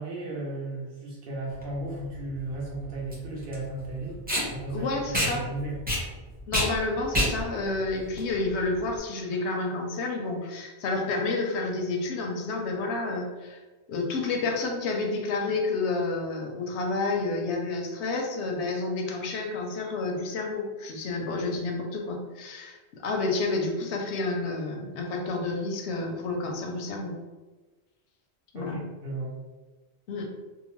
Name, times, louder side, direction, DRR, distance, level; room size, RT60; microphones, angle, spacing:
voice 1, 0.0-4.2 4.5-6.0 28.5-29.3, right 2 dB, 60° right, -3 dB, 1.0 m, -35 dB
Packing tape duct tape, 1.5-9.0, equal, 10° right, 0.8 m, -30 dB
voice 2, 4.7-5.4 6.5-13.6 13.9-27.1 28.5-28.8 30.1-30.3, left 3 dB, 90° left, 1 dB, 0.9 m, -30 dB
2.8 x 2.1 x 3.0 m, 1.2 s
omnidirectional pair, 1.1 m